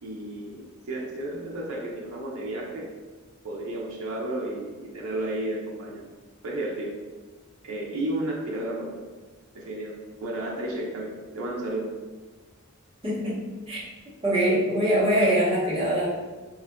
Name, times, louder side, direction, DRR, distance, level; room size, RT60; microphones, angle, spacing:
voice 1, 0.0-2.9 3.4-6.1 6.4-7.0 7.6-9.0 9.5-12.0, right 1 dB, 80° right, -3 dB, 0.6 m, -32 dB
voice 2, 13.0-13.8 14.2-16.1, right 1 dB, 25° right, -8 dB, 1.0 m, -23 dB
4.2 x 2.4 x 2.2 m, 1.3 s
head